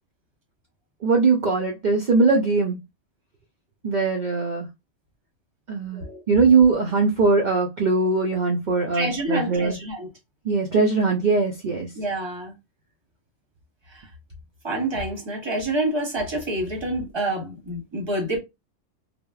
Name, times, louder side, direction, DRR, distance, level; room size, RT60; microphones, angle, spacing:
voice 1, 1.0-2.8 3.8-4.7 5.7-9.8 10.4-11.9, right 4 dB, 60° right, 0.5 m, -21 dB
voice 2, 8.9-10.1 12.0-12.5 14.6-18.4, right 1 dB, 25° right, 0.7 m, -27 dB
3.3 x 2.0 x 2.3 m
omnidirectional pair, 1.3 m